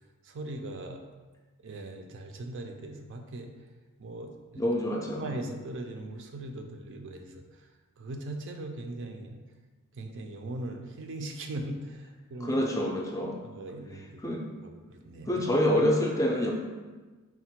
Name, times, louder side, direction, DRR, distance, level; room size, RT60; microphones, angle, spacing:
voice 1, 0.2-1.0 1.6-3.5 4.0-4.6 5.1-7.4 8.0-9.4 10.0-12.6 13.4-14.2 14.6-15.4, right 2 dB, 55° right, 4 dB, 0.4 m, -39 dB
voice 2, 4.6-5.2 12.4-13.4 14.2-14.4 15.3-16.5, equal, 15° left, 0 dB, 0.4 m, -26 dB
4.3 x 2.1 x 4.3 m, 1.3 s
head